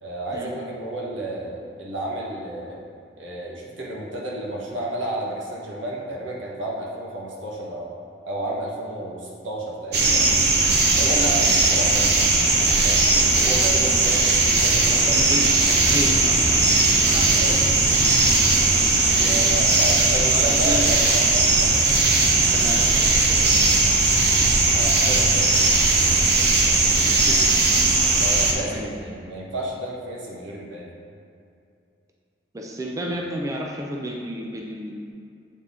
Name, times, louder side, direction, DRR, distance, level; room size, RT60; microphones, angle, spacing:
voice 1, 0.0-2.8 3.2-7.9 8.2-10.2 11.0-12.1 12.8-14.2 14.6-15.7 17.1-17.6 19.1-21.7 24.7-25.5 28.2-30.9, right 1 dB, 85° right, -4 dB, 1.4 m, -31 dB
sound 1, 9.9-28.5, right 3 dB, 55° right, 0.8 m, -18 dB
voice 2, 15.1-15.5 15.9-16.7 17.0-17.5 20.3-20.9 22.4-24.0 27.0-27.6 28.6-28.9 32.5-35.1, equal, 15° right, -1 dB, 0.4 m, -32 dB
7.9 x 4.1 x 3.7 m, 2.4 s
head